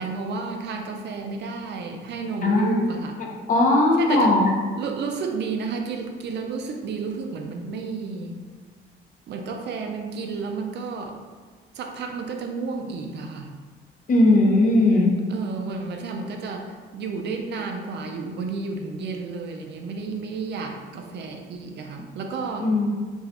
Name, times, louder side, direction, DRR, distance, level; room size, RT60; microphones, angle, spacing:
voice 1, 0.0-3.2 4.0-4.4 4.8-8.4 9.3-11.2 11.7-13.5 15.3-22.7, right 4 dB, 60° right, 3 dB, 0.4 m, -31 dB
voice 2, 2.4-2.9 3.2-4.5 14.1-15.1 22.6-22.9, left 2 dB, 40° left, 0 dB, 0.6 m, -18 dB
2.5 x 2.3 x 3.5 m, 1.5 s
cardioid pair, 90°, 20 cm